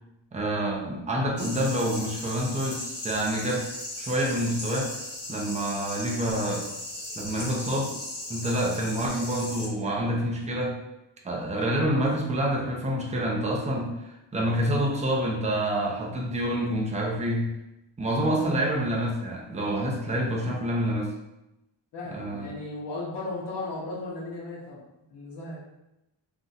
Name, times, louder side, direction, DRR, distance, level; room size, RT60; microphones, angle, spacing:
voice 1, 0.3-3.7 4.0-4.9 5.3-6.7 7.2-7.9 8.3-10.8 11.2-17.5 18.0-21.1 22.1-22.5, right 1 dB, 15° right, -1 dB, 0.4 m, -27 dB
sound 1, 1.4-9.7, left 1 dB, 30° left, 1.1 m, -37 dB
voice 2, 21.9-24.8 25.1-25.6, left 2 dB, 60° left, -6 dB, 0.8 m, -36 dB
2.5 x 2.2 x 3.8 m, 0.92 s
wide cardioid pair, 150°, 47 cm